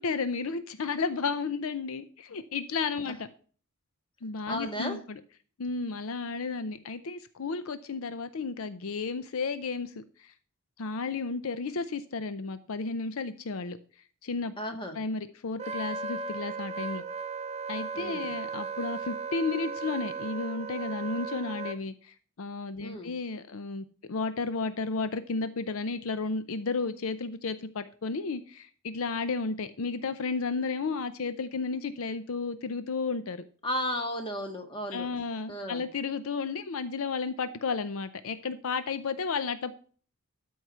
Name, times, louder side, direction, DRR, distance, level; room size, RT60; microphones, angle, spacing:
voice 1, 0.0-3.3 4.2-5.2 5.6-10.3 10.8-13.8 14.2-14.5 14.9-17.0 17.7-33.4 34.9-39.7, left 4 dB, 70° left, 0.6 m, -33 dB
voice 2, 4.5-5.0 14.6-15.0 17.9-18.3 22.8-23.1 33.6-35.1 35.5-35.8, equal, 25° left, 1.7 m, -34 dB
Wind instrument woodwind instrument, 15.6-21.8, right 4 dB, 30° right, 0.5 m, -36 dB
13.0 x 4.7 x 5.6 m
head